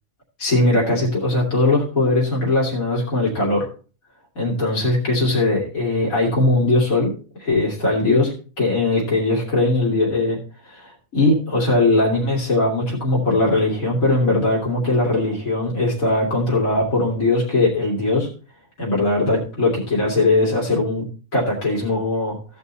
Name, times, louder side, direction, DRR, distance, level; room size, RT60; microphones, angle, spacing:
voice 1, 0.4-3.7 4.4-7.1 7.4-8.3 8.6-10.4 10.6-18.3 18.8-21.0 21.3-22.4, left 2 dB, 75° left, -4 dB, 3.1 m, -20 dB
16.0 x 5.4 x 4.1 m, 0.37 s
omnidirectional pair, 1.4 m